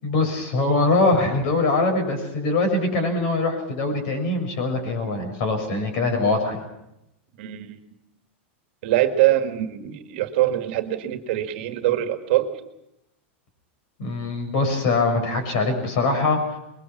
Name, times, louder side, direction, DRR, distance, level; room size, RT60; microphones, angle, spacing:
voice 1, 0.0-6.6 14.0-16.4, left 3 dB, 45° left, 5 dB, 6.7 m, -22 dB
voice 2, 7.4-7.8 8.8-12.5, right 14 dB, 55° right, 7 dB, 2.0 m, -23 dB
25.0 x 22.0 x 6.0 m, 0.86 s
supercardioid pair, 165°, 7 cm